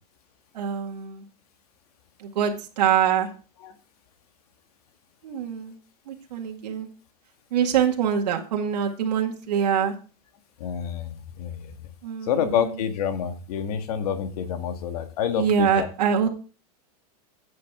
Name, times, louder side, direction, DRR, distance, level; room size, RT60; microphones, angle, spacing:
voice 1, 0.5-1.2 2.2-3.3 5.2-5.8 6.1-6.9 7.5-9.9 12.0-12.8 15.3-16.3, right 8 dB, 85° right, 1 dB, 2.0 m, -24 dB
voice 2, 10.6-11.7 12.2-15.9 16.2-16.3, left 8 dB, 65° left, 8 dB, 1.8 m, -28 dB
11.5 x 8.5 x 3.7 m, 0.37 s
supercardioid pair, 160°, 21 cm